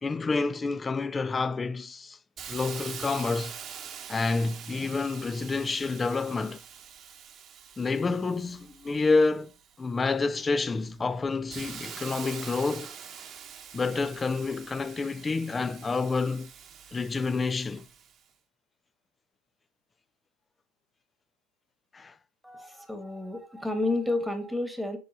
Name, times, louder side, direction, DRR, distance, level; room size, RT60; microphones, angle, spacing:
voice 1, 0.0-2.2 2.5-3.5 4.1-6.6 7.8-9.5 9.8-12.9 13.7-16.5 16.9-17.9 21.9-22.1, left 4 dB, 20° left, 0.4 m, -28 dB
Hiss, 2.4-9.9 10.4-18.2, right 8 dB, 35° right, 1.0 m, -45 dB
voice 2, 22.4-25.0, left 2 dB, ahead, 1.5 m, -30 dB
6.9 x 4.7 x 4.0 m
hypercardioid pair, 85°, 0 cm